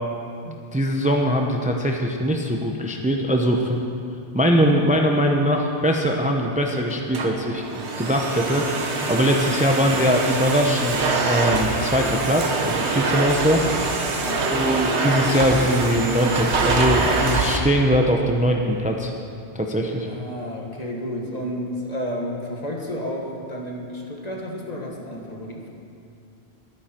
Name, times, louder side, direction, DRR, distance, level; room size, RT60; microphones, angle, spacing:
voice 1, 0.4-3.8 4.3-13.6 14.5-19.1 19.5-20.1, equal, 10° right, 1 dB, 0.8 m, -21 dB
Domestic sounds home sounds, 6.9-17.6, right 3 dB, 85° right, 1.5 m, -24 dB
voice 2, 13.4-13.9 14.2-14.6 20.0-25.7, equal, 40° left, 0 dB, 1.7 m, -31 dB
22.5 x 9.6 x 4.5 m, 2.5 s
omnidirectional pair, 1.1 m